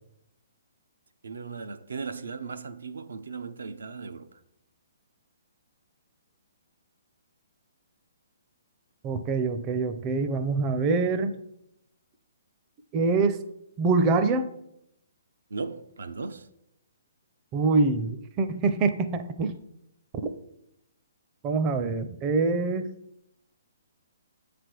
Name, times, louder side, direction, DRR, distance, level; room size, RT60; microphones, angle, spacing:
voice 1, 1.2-4.4 15.5-16.5, right 4 dB, 80° right, 0.5 m, -37 dB
voice 2, 9.0-11.4 12.9-13.4 13.8-14.5 17.5-19.5 21.4-22.9, right 3 dB, 25° right, 0.5 m, -25 dB
7.3 x 3.4 x 6.0 m
hypercardioid pair, 145°, 0 cm